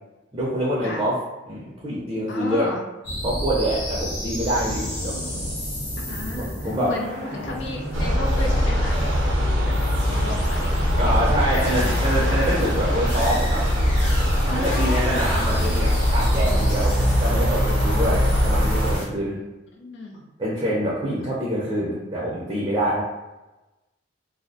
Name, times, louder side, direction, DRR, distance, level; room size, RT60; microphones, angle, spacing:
voice 1, 0.3-1.2 1.5-2.7 3.2-5.2 6.3-6.9 11.0-13.6 14.4-19.4 20.4-23.0, right 1 dB, 20° right, -6 dB, 0.4 m, -25 dB
voice 2, 2.3-2.8 6.1-9.1 9.4-9.8 10.1-12.4 14.5-15.3 19.7-20.3, left 2 dB, 70° left, 1 dB, 0.4 m, -34 dB
sound 1, 3.0-19.0, equal, 85° left, 1.0 m, -33 dB
sound 2, 7.9-19.0, equal, 80° right, 0.5 m, -21 dB
2.5 x 2.0 x 2.6 m, 1.1 s
head